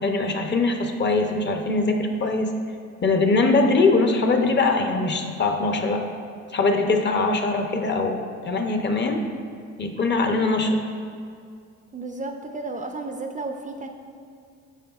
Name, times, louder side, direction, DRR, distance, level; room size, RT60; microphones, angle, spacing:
voice 1, 0.0-2.5 3.0-6.0 6.5-9.2 9.8-10.8, left 3 dB, 35° left, 4 dB, 0.6 m, -22 dB
voice 2, 11.9-13.9, right 3 dB, 25° right, 4 dB, 0.4 m, -33 dB
9.1 x 5.3 x 2.3 m, 2.2 s
cardioid pair, 90°, 30 cm